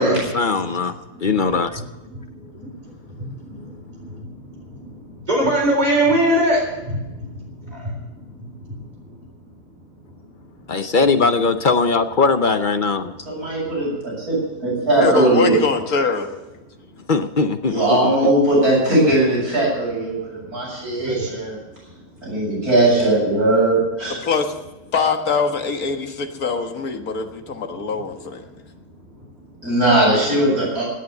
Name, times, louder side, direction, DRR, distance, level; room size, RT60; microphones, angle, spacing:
voice 1, 0.0-0.9 1.2-1.8 10.7-13.1 17.1-18.3, left 4 dB, 45° left, 0.6 m, -20 dB
voice 2, 1.1-1.8 2.1-9.2 9.5-10.8 13.5-13.7 14.2-14.3 16.9-17.1 20.1-22.6 27.7-28.0 28.5-29.6, right 1 dB, 25° right, 4.1 m, -27 dB
voice 3, 13.3-15.5 17.7-21.6 22.2-24.2 29.6-30.8, right 1 dB, 75° right, 7.4 m, -19 dB
voice 4, 15.0-16.3 24.2-24.5 24.9-28.5, left 4 dB, 70° left, 2.0 m, -23 dB
17.0 x 9.4 x 6.8 m
omnidirectional pair, 1.6 m